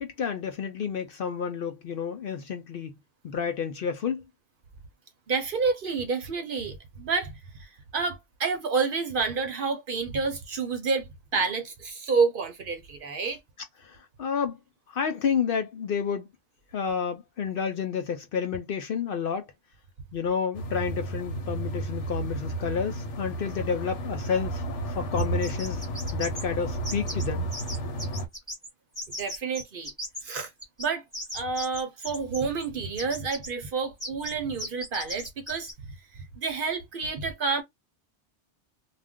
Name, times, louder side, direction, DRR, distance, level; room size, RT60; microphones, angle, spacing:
voice 1, 0.0-2.9 3.2-4.2 13.8-14.6 14.9-16.3 16.7-19.5 20.1-25.8 26.1-27.5, left 6 dB, 60° left, 0.6 m, -30 dB
voice 2, 5.3-13.4 29.1-29.9 30.2-30.5 30.8-31.0 31.3-37.6, right 4 dB, 55° right, 0.7 m, -29 dB
sound 1, 20.5-28.3, right 2 dB, 80° left, 1.1 m, -32 dB
sound 2, 25.2-26.4 26.8-27.3 27.5-28.7 28.9-30.2 30.6-32.7 32.9-33.5 34.0-34.3 34.6-35.7, equal, 5° left, 1.3 m, -37 dB
2.4 x 2.2 x 3.5 m
omnidirectional pair, 1.2 m